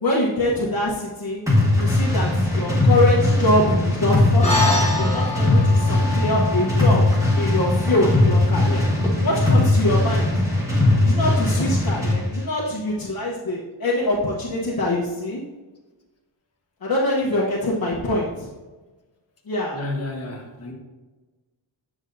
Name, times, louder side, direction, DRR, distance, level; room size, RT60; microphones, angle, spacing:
voice 1, 0.0-1.4 1.8-7.0 7.4-8.8 9.2-10.3 11.0-15.4 16.8-18.5 19.5-19.8, left 1 dB, 45° left, -5 dB, 1.0 m, -24 dB
sound 1, 1.5-12.2, left 2 dB, 5° right, 1.6 m, -19 dB
sound 2, 4.4-9.1, left 2 dB, 15° left, 1.1 m, -28 dB
voice 2, 19.7-20.7, left 2 dB, 30° left, -1 dB, 1.3 m, -31 dB
8.5 x 6.1 x 2.6 m, 1.2 s
wide cardioid pair, 150°, 49 cm